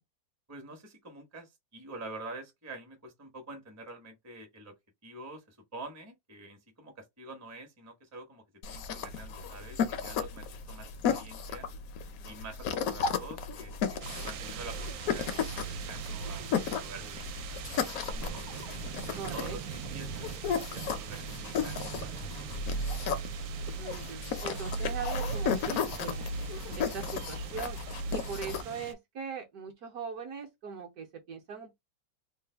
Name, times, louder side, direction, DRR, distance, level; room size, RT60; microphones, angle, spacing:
voice 1, 0.5-4.7 5.0-11.6 12.2-18.5 19.1-22.2, right 2 dB, 25° right, 0.3 m, -47 dB
sound 1, 8.6-28.6, left 5 dB, 75° left, 0.8 m, -34 dB
sound 2, 14.0-28.9, right 10 dB, 80° right, 1.3 m, -43 dB
voice 2, 19.2-19.6 23.8-26.4 26.7-27.8 28.1-31.8, right 6 dB, 65° right, 1.0 m, -40 dB
3.2 x 2.2 x 3.3 m
omnidirectional pair, 2.1 m